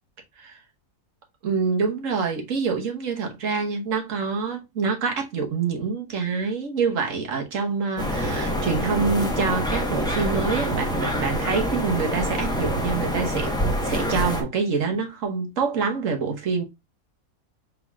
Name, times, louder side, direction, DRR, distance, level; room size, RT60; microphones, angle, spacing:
voice 1, 1.4-13.5 13.8-16.6, right 5 dB, 65° right, 1.5 m, -26 dB
sound 1, 8.0-14.4, equal, 5° left, 0.9 m, -26 dB
5.5 x 3.8 x 2.3 m
omnidirectional pair, 1.5 m